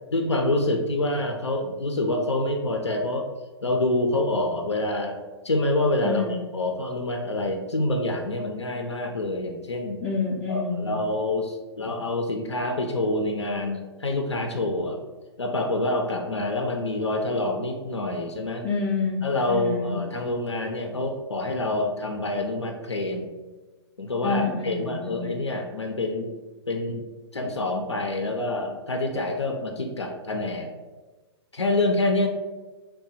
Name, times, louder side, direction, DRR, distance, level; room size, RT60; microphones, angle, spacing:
voice 1, 0.1-3.2 3.6-10.0 10.5-15.0 15.4-18.6 19.2-23.3 24.0-26.3 26.7-27.0 27.3-30.7 31.5-32.3, left 2 dB, 85° left, 2 dB, 0.4 m, -27 dB
voice 2, 6.0-6.4 10.0-10.9 18.6-19.9 24.2-25.3, left 4 dB, 15° left, -5 dB, 0.4 m, -28 dB
2.8 x 2.2 x 4.0 m, 1.2 s
figure-of-eight pair, 115°, 14 cm